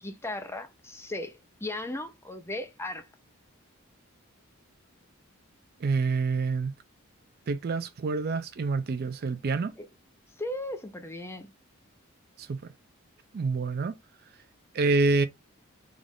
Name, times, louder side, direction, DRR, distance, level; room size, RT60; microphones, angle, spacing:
voice 1, 0.0-3.1 9.8-9.9 10.4-11.5, left 1 dB, 10° left, 0.6 m, -37 dB
voice 2, 5.8-6.7 7.5-9.7 12.4-12.6 13.3-13.9 14.7-15.3, right 4 dB, 45° right, 0.4 m, -27 dB
3.7 x 2.5 x 3.5 m
head